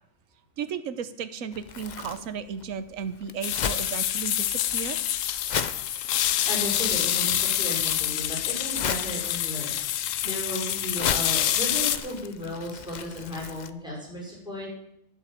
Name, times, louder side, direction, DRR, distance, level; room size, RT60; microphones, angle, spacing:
voice 1, 0.6-5.0, right 7 dB, 80° right, 13 dB, 1.3 m, -34 dB
Crumpling crinkling, 1.5-13.7, left 7 dB, 45° left, 0.6 m, -37 dB
sound 1, 3.4-12.0, left 11 dB, 75° left, 1.0 m, -27 dB
voice 2, 6.4-14.7, equal, 5° right, -4 dB, 5.6 m, -35 dB
12.0 x 7.8 x 7.5 m, 0.78 s
omnidirectional pair, 1.4 m